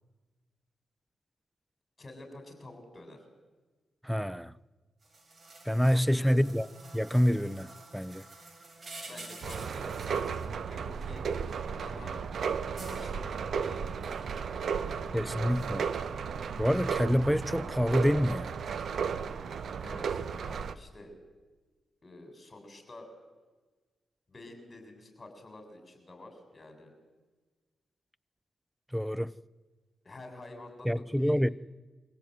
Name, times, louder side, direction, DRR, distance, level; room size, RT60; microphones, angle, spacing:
voice 1, 2.0-3.2 5.9-6.4 9.1-11.3 11.8-12.2 12.8-15.6 19.8-21.1 22.0-23.1 24.3-26.9 30.0-31.4, left 1 dB, 35° left, 7.3 m, -49 dB
voice 2, 4.0-4.5 5.7-6.7 6.9-8.3 15.1-15.9 16.6-18.6 28.9-29.3 30.8-31.5, equal, ahead, 0.7 m, -27 dB
sound 1, 5.0-10.5 12.8-13.0 15.5-15.7, right 2 dB, 45° right, 6.1 m, -48 dB
sound 2, 9.4-20.8, right 6 dB, 70° right, 1.1 m, -34 dB
24.5 x 16.0 x 9.4 m
cardioid pair, 60°, 0 cm